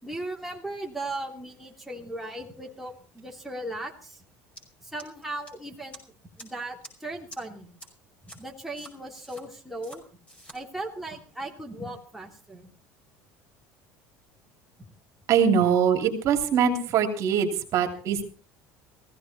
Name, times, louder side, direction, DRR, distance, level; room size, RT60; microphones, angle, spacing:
voice 1, 0.0-4.2 4.8-6.0 6.4-7.7 8.2-10.0 10.5-12.7 15.6-15.7, right 2 dB, 5° right, -1 dB, 3.1 m, -37 dB
sound 1, 4.6-4.7 5.0-5.5 5.9-6.0 6.4-6.5 6.8-6.9 7.3-7.4 7.8-7.9 8.3-8.4 8.8-9.4 9.8-10.0 10.3-10.6, right 1 dB, 20° left, 5.4 m, -45 dB
voice 2, 15.3-18.2, right 7 dB, 55° right, 4 dB, 2.9 m, -23 dB
16.0 x 16.0 x 4.3 m, 0.39 s
supercardioid pair, 110°, 7 cm